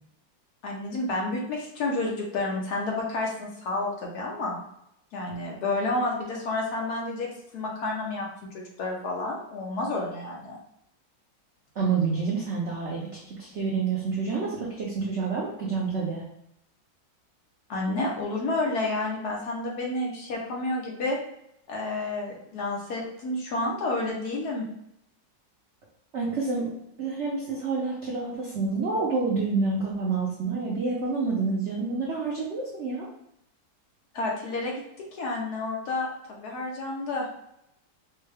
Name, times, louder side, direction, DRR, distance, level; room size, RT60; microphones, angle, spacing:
voice 1, 0.6-4.6 5.1-7.3 7.5-10.6 17.7-21.2 21.7-24.6 34.1-34.8 35.1-37.3, left 2 dB, 60° left, -2 dB, 1.1 m, -30 dB
voice 2, 11.8-16.3 26.1-26.7 27.0-33.1, right 4 dB, 90° right, -4 dB, 0.6 m, -28 dB
4.5 x 2.2 x 3.3 m, 0.79 s
omnidirectional pair, 2.1 m